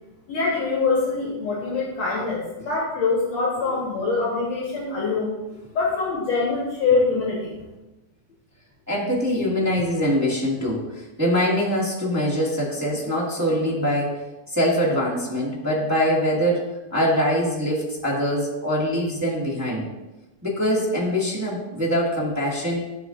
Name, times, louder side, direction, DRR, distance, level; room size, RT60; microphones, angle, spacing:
voice 1, 0.3-5.3 5.7-7.5, left 4 dB, 65° left, -4 dB, 2.4 m, -24 dB
voice 2, 8.9-14.2 14.5-19.9 20.4-22.8, equal, 10° right, -7 dB, 1.2 m, -23 dB
12.5 x 5.8 x 2.6 m, 1.0 s
omnidirectional pair, 3.5 m